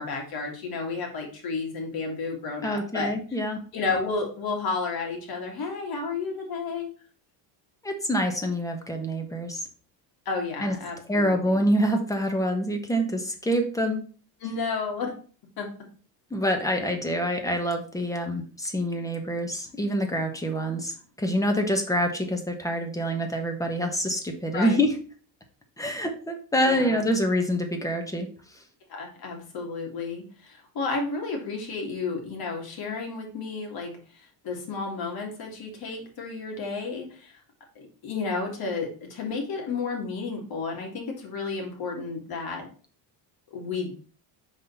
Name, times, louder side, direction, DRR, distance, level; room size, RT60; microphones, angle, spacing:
voice 1, 0.0-3.1 3.7-6.9 10.3-11.7 14.4-15.1 15.6-15.7 16.8-16.9 24.5-24.8 26.7-27.0 28.9-37.4 37.8-42.7 43.5-43.9, left 4 dB, 50° left, 1 dB, 2.4 m, -32 dB
voice 2, 2.6-3.6 7.8-9.7 10.6-10.7 11.1-14.0 16.3-24.9 25.8-28.3, equal, 5° left, 4 dB, 1.2 m, -26 dB
5.2 x 4.1 x 5.6 m, 0.41 s
cardioid pair, 130°, 46 cm